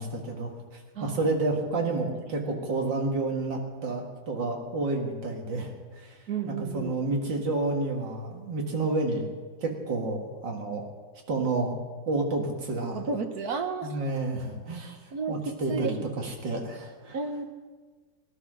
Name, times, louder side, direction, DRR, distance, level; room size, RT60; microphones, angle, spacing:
voice 1, 0.0-9.3 9.6-10.8 11.3-11.8 12.1-13.1 13.8-15.0 15.3-17.2, right 2 dB, 85° right, 1 dB, 2.5 m, -30 dB
voice 2, 6.3-6.9 13.0-14.0 15.1-16.0 17.1-17.4, right 5 dB, 60° right, 7 dB, 1.7 m, -32 dB
18.5 x 12.5 x 6.2 m, 1.5 s
omnidirectional pair, 1.9 m